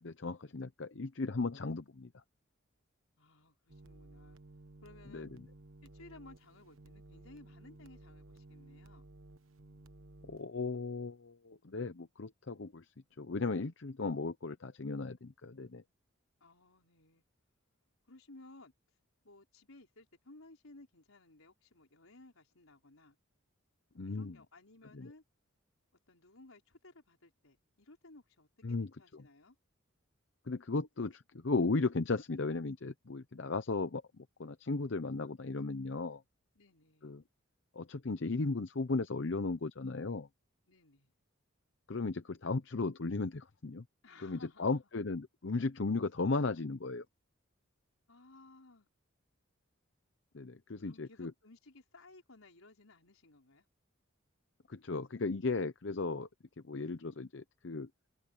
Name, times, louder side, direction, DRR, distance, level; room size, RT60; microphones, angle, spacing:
voice 1, 0.0-2.1 5.1-5.3 10.3-12.8 13.2-15.8 24.0-24.3 24.9-25.1 28.6-28.9 29.1-29.2 30.5-36.2 37.0-37.2 37.8-40.3 41.9-43.8 44.2-47.0 50.3-51.3 54.7-56.3 56.6-57.9, left 3 dB, 60° left, 0.7 m, -36 dB
voice 2, 3.2-4.4 4.8-5.3 5.8-9.1 16.4-17.2 18.1-18.7 19.2-23.2 24.1-25.2 26.1-29.6 36.5-37.1 40.7-41.1 44.0-44.8 48.1-48.9 50.8-53.6, left 2 dB, 85° left, 4.7 m, -58 dB
sound 1, 3.7-10.4, right 2 dB, 70° right, 1.2 m, -56 dB
head